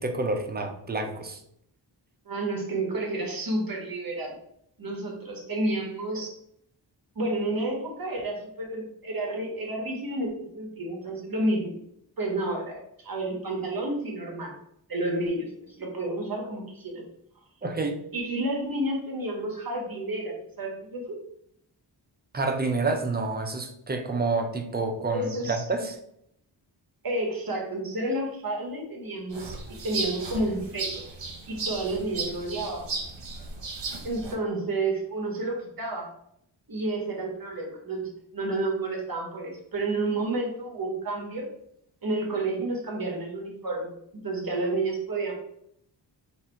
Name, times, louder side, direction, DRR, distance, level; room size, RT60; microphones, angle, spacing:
voice 1, 0.0-1.4 17.6-18.0 22.3-26.0, right 3 dB, 20° right, 5 dB, 0.6 m, -28 dB
voice 2, 2.3-4.3 4.8-6.3 7.1-11.7 12.2-14.6 14.9-17.0 18.1-21.2 25.1-25.6 27.0-29.6 29.8-31.0 31.5-33.0 34.0-36.1 36.7-41.5 42.0-45.3, right 2 dB, 50° right, 0 dB, 1.1 m, -30 dB
sound 1, 29.3-34.3, right 3 dB, 80° right, 1.0 m, -35 dB
4.1 x 2.6 x 4.4 m, 0.73 s
wide cardioid pair, 105°, 44 cm